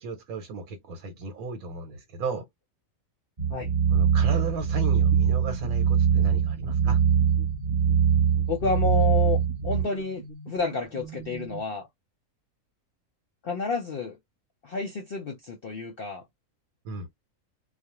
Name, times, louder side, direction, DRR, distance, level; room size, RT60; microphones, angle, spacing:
voice 1, 0.0-2.5 3.9-7.0 16.8-17.1, right 3 dB, 85° right, 1.1 m, -34 dB
sound 1, 3.4-9.8, right 7 dB, 30° right, 1.0 m, -22 dB
sound 2, 4.8-11.6, right 2 dB, 55° right, 0.8 m, -41 dB
voice 2, 8.5-11.9 13.4-14.2 14.6-16.2, left 4 dB, 50° left, 0.7 m, -30 dB
2.4 x 2.1 x 2.9 m
omnidirectional pair, 1.4 m